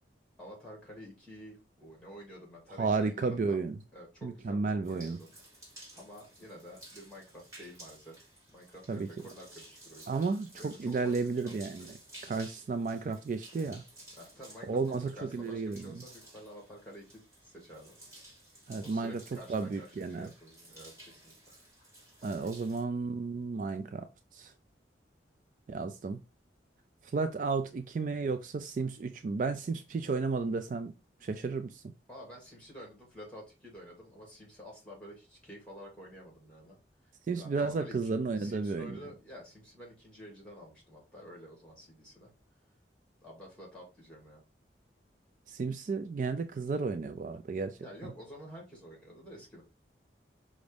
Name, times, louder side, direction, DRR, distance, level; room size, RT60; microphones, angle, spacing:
voice 1, 0.4-3.6 3.9-5.3 5.9-8.2 8.5-10.1 10.6-11.9 14.2-18.0 18.8-21.3 22.2-22.3 32.1-36.8 37.4-38.1 38.4-42.3 43.2-44.4 47.8-49.6, equal, 5° left, 2.2 m, -50 dB
voice 2, 2.8-3.7 4.2-5.2 8.9-9.1 10.1-11.9 12.2-13.8 14.6-16.0 18.7-19.2 19.5-20.3 22.2-24.5 25.7-26.2 27.1-30.9 31.2-31.9 37.3-39.0 45.5-48.1, right 4 dB, 45° right, 0.3 m, -33 dB
sound 1, 4.8-22.8, right 1 dB, 15° right, 2.0 m, -55 dB
5.1 x 2.5 x 3.3 m
head